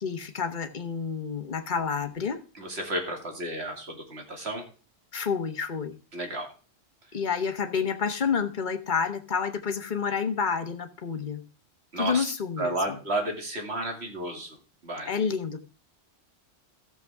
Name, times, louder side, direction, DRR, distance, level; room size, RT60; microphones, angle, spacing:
voice 1, 0.0-2.4 5.1-6.0 7.1-11.4 12.0-12.8 15.0-15.6, left 6 dB, 45° left, 8 dB, 1.2 m, -29 dB
voice 2, 2.6-4.6 6.1-6.5 11.9-12.2 12.6-14.6 14.8-15.1, right 1 dB, 65° right, 3 dB, 2.7 m, -32 dB
14.0 x 7.2 x 3.5 m, 0.36 s
omnidirectional pair, 1.2 m